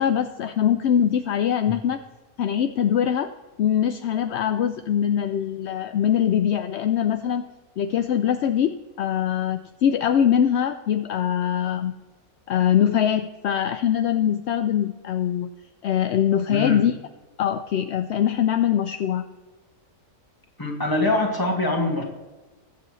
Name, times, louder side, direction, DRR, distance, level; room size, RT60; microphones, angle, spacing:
voice 1, 0.0-2.0 2.4-3.3 3.6-7.5 7.8-11.9 12.5-15.5 15.8-17.0 17.4-19.2, left 9 dB, 65° left, 9 dB, 0.7 m, -22 dB
voice 2, 16.5-16.8 20.6-22.0, left 2 dB, 15° left, 0 dB, 2.0 m, -23 dB
21.5 x 8.2 x 3.1 m, 1.2 s
omnidirectional pair, 1.6 m